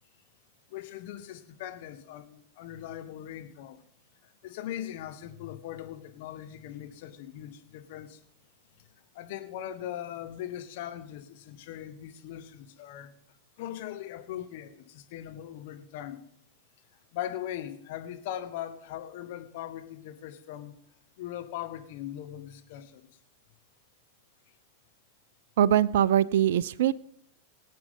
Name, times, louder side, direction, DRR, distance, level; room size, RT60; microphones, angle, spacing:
voice 1, 0.7-3.8 4.2-8.2 9.1-13.1 13.6-16.2 17.1-20.8 21.2-23.1, left 11 dB, 50° left, 1.4 m, -40 dB
voice 2, 25.6-26.9, right 10 dB, 60° right, 0.5 m, -22 dB
23.5 x 8.5 x 3.8 m
figure-of-eight pair, 95°, 0 cm